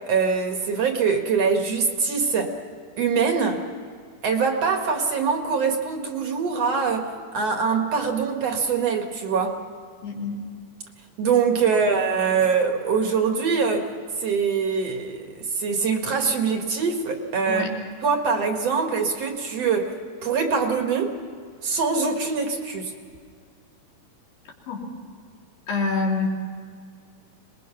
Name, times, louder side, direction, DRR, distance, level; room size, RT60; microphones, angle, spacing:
voice 1, 0.1-2.6 3.0-3.6 4.2-9.6 11.2-13.9 14.2-17.7 18.0-19.9 20.2-21.2 21.6-22.9, right 5 dB, 55° right, 4 dB, 2.6 m, -23 dB
voice 2, 10.0-10.4 17.5-17.7 24.7-24.9 25.7-26.3, left 4 dB, 90° left, -2 dB, 5.2 m, -26 dB
25.5 x 21.0 x 5.9 m, 2.1 s
omnidirectional pair, 3.8 m